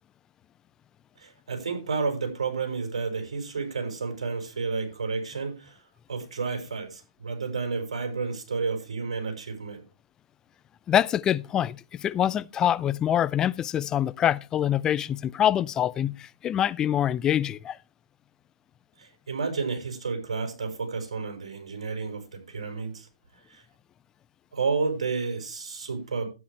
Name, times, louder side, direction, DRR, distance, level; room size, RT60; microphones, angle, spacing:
voice 1, 1.2-5.8 6.1-9.8 19.0-23.1 23.5-23.6 24.5-26.3, right 4 dB, 80° right, 6.0 m, -31 dB
voice 2, 10.9-17.8, left 10 dB, 20° left, 0.5 m, -25 dB
12.5 x 10.0 x 3.3 m
hypercardioid pair, 135°, 3 cm